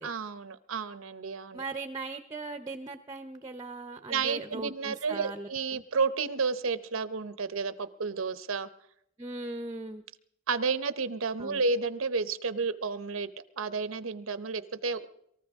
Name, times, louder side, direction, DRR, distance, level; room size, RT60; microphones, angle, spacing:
voice 1, 0.0-1.6 4.1-8.7 10.5-13.3 13.6-15.1, right 4 dB, 90° right, 13 dB, 0.8 m, -31 dB
voice 2, 1.5-5.8 9.2-10.0 11.4-11.6, right 3 dB, 20° right, 9 dB, 0.7 m, -39 dB
24.0 x 14.0 x 3.6 m, 0.74 s
head